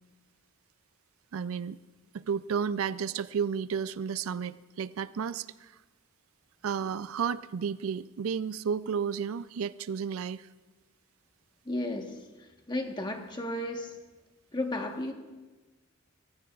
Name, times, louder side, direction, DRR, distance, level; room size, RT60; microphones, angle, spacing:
voice 1, 1.3-1.8 2.1-5.7 6.6-10.5, right 7 dB, 75° right, 16 dB, 0.4 m, -32 dB
voice 2, 11.6-12.1 12.7-13.9 14.5-15.1, left 1 dB, 20° left, 3 dB, 1.2 m, -33 dB
24.0 x 16.0 x 2.4 m, 1.2 s
head